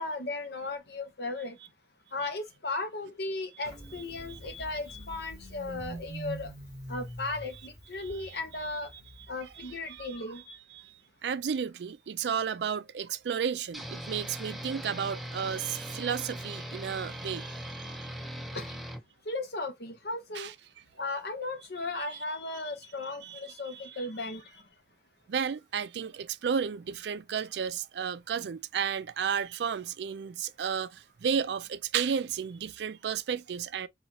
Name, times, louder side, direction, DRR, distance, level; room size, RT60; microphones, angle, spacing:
voice 1, 0.0-1.6 2.1-6.5 6.9-9.0 9.3-10.6 18.5-18.8 19.2-20.5 20.9-24.7, left 2 dB, 60° left, 0.8 m, -36 dB
Engine starting, 3.6-10.1, right 1 dB, 15° left, 1.7 m, -44 dB
voice 2, 8.0-8.4 9.6-10.2 10.7-10.9 11.2-17.9 20.3-20.5 22.1-22.2 23.2-23.4 25.3-33.9, right 7 dB, 70° right, 0.4 m, -33 dB
sound 1, 13.7-19.0, equal, ahead, 0.4 m, -40 dB
4.1 x 2.4 x 2.9 m
head